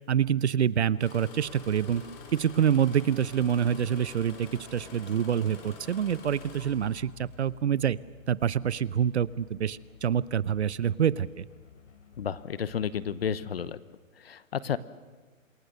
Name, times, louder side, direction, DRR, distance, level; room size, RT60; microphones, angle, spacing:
voice 1, 0.1-2.0 2.3-8.0 8.3-11.5, right 9 dB, 55° right, 19 dB, 0.7 m, -26 dB
Engine starting, 1.0-7.4 8.4-8.7 9.3-9.7 10.3-10.5, left 4 dB, 20° left, 2.8 m, -48 dB
sound 1, 1.4-13.4, left 6 dB, 60° left, 3.3 m, -53 dB
voice 2, 12.2-13.8 14.2-14.8, left 8 dB, 45° left, 16 dB, 1.0 m, -32 dB
27.0 x 21.5 x 6.8 m, 1.4 s
hypercardioid pair, 175°, 41 cm